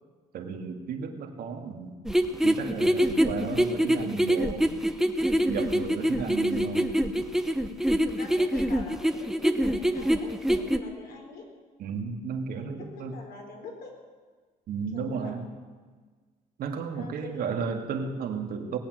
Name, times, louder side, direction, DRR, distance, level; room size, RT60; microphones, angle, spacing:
voice 1, 0.3-2.0 2.4-4.7 5.5-6.9 11.8-13.2 14.7-15.5 16.6-18.8, right 5 dB, 65° right, 4 dB, 2.0 m, -33 dB
sound 1, 2.1-10.8, equal, 5° right, 0.9 m, -24 dB
voice 2, 8.0-11.5 12.5-14.0 14.9-15.3 16.9-17.6, left 3 dB, 65° left, 1 dB, 4.2 m, -44 dB
19.0 x 8.6 x 7.7 m, 1.5 s
cardioid pair, 110°, 17 cm